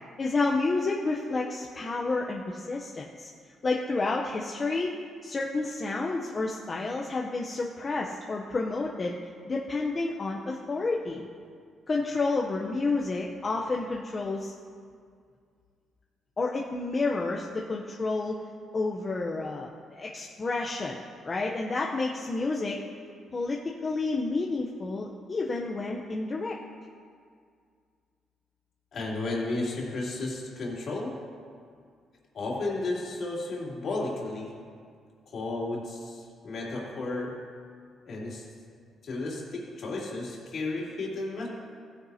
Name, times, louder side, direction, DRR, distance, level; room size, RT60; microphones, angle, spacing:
voice 1, 0.2-3.3 3.6-4.9 5.2-9.1 9.5-11.3 11.9-14.5 16.4-18.4 18.7-22.8 23.3-26.6, left 3 dB, 35° left, -1 dB, 0.8 m, -30 dB
voice 2, 28.9-31.2 32.3-34.5 35.3-37.4 38.0-38.5 39.0-41.5, left 2 dB, 60° left, -4 dB, 3.0 m, -33 dB
15.5 x 9.7 x 2.8 m, 2.2 s
cardioid pair, 90°, 0 cm